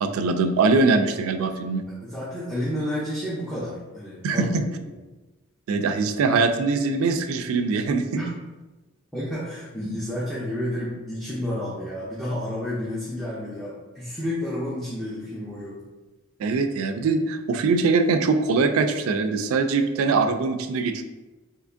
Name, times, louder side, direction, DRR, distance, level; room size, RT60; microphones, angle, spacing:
voice 1, 0.0-1.9 4.2-4.6 5.7-8.1 16.4-21.0, right 4 dB, 75° right, 8 dB, 0.3 m, -22 dB
voice 2, 2.0-4.5 8.1-8.3 9.1-15.8, left 1 dB, ahead, -9 dB, 0.5 m, -30 dB
3.4 x 2.8 x 2.5 m, 1.2 s
head